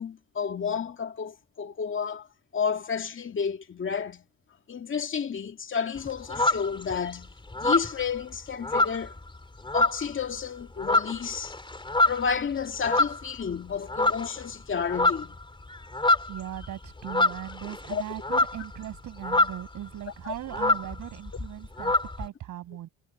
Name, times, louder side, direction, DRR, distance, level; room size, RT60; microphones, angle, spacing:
voice 1, 0.0-2.3 2.5-4.2 4.7-7.3 7.6-9.1 9.7-11.6 12.1-15.4 17.9-18.0 20.2-20.3, left 6 dB, 40° left, 2.2 m, -31 dB
sound 1, 6.0-7.1 7.5-9.4 9.6-10.2 10.6-13.5 13.9-14.5 14.7-19.8 20.1-20.2 20.4-22.3, left 2 dB, 15° left, 3.4 m, -26 dB
voice 2, 16.3-21.9 22.2-22.9, right 12 dB, 80° right, 7.5 m, -38 dB
cardioid pair, 90°, 30 cm